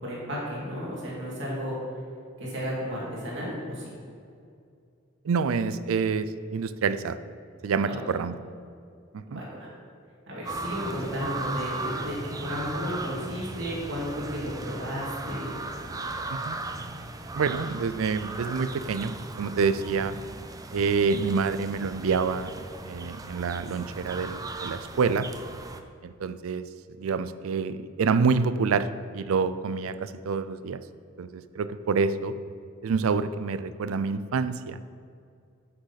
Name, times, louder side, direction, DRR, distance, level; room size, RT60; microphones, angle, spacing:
voice 1, 0.0-1.8 2.4-3.9 7.8-8.0 9.3-9.7 10.3-15.5, equal, 60° right, -5 dB, 2.4 m, -33 dB
voice 2, 5.2-7.2 7.6-8.4 9.1-9.4 16.3-16.6 17.4-20.2 20.7-22.5 22.8-25.3 26.0-26.7 27.0-30.8 31.2-32.3 32.8-34.8, right 5 dB, 90° right, 13 dB, 0.4 m, -27 dB
sound 1, 10.4-25.8, right 2 dB, 15° right, 0.4 m, -37 dB
9.8 x 6.5 x 4.1 m, 2.4 s
head